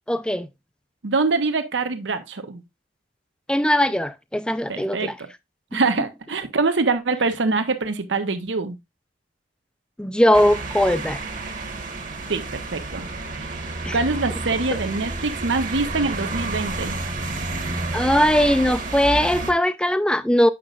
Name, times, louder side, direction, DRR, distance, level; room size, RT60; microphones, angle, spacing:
voice 1, 0.1-0.5 3.5-5.2 10.0-11.2 13.8-14.0 17.9-20.5, equal, 5° left, 0.4 m, -20 dB
voice 2, 1.0-2.6 4.7-5.1 5.7-8.8 12.3-13.1 13.4-13.6 13.9-17.0, right 3 dB, 80° right, 0.9 m, -24 dB
sound 1, 10.3-19.5, right 2 dB, 45° right, 1.4 m, -30 dB
8.3 x 6.2 x 2.4 m
head